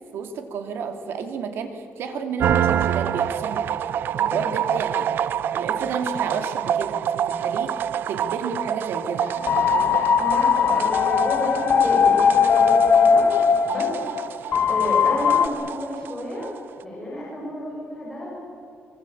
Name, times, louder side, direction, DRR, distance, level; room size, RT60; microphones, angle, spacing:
voice 1, 0.1-3.7 4.3-5.1 5.5-10.0, right 5 dB, 80° right, 6 dB, 2.7 m, -31 dB
sound 1, 2.4-16.6, right 9 dB, 65° right, 0.6 m, -27 dB
voice 2, 4.1-4.4 10.2-13.3 13.7-13.9 14.7-16.5 16.8-18.3, equal, 10° left, -6 dB, 6.4 m, -30 dB
sound 2, 9.2-15.5, left 7 dB, 45° left, 1.1 m, -19 dB
25.0 x 23.5 x 8.6 m, 2.5 s
cardioid pair, 170°, 4 cm